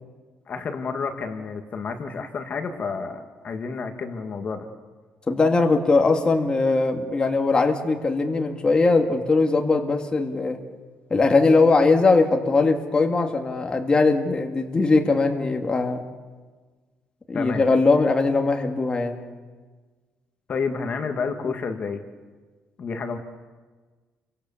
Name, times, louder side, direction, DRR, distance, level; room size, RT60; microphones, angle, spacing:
voice 1, 0.5-4.7 17.3-17.6 20.5-22.0 22.8-23.2, left 5 dB, 40° left, 5 dB, 1.9 m, -30 dB
voice 2, 5.3-10.6 11.1-16.0 17.3-19.2, left 3 dB, 20° left, 3 dB, 2.0 m, -20 dB
30.0 x 24.5 x 7.2 m, 1.4 s
cardioid pair, 160°, 4 cm